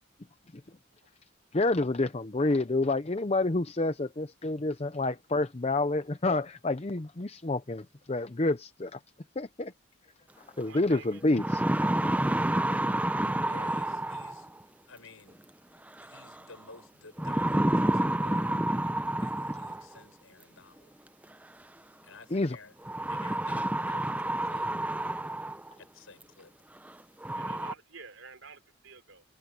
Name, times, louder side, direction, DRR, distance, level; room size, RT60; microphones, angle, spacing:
voice 1, 1.5-9.0 9.4-9.7 10.6-11.6 22.3-22.6, left 2 dB, 30° left, 0.6 m, -28 dB
sound 1, 10.6-10.7 11.2-14.6 16.0-16.4 17.2-20.0 21.2-21.3 22.8-25.7 26.2-26.3 26.8-26.9 27.2-27.7, right 1 dB, 5° right, 0.6 m, -29 dB
voice 2, 10.7-11.2 27.4-29.2, right 4 dB, 70° right, 3.8 m, -48 dB
voice 3, 13.5-14.5 14.8-15.4 16.0-18.6 19.2-21.0 22.0-22.8 23.1-25.2 25.8-26.5, left 4 dB, 80° left, 5.4 m, -53 dB
head